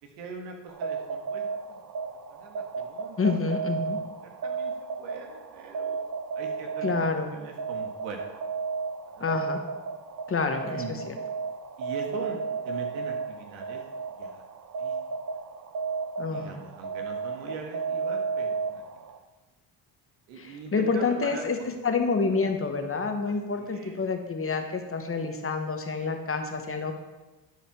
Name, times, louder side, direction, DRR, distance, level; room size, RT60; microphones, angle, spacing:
voice 1, 0.0-1.8 2.3-4.7 5.0-6.0 6.3-7.0 7.3-8.2 9.1-9.3 10.7-10.9 11.8-13.8 14.2-14.4 14.8-15.0 16.3-18.8 20.3-21.5 23.2-24.0, right 5 dB, 85° right, 3 dB, 1.6 m, -42 dB
sound 1, 0.7-19.2, right 5 dB, 40° right, 1.0 m, -34 dB
voice 2, 3.2-4.0 6.8-7.3 9.2-9.6 10.3-11.1 16.2-16.6 20.4-21.6 21.8-26.9, left 4 dB, 25° left, 5 dB, 1.3 m, -28 dB
11.5 x 4.9 x 4.6 m, 1.1 s
hypercardioid pair, 65°, 49 cm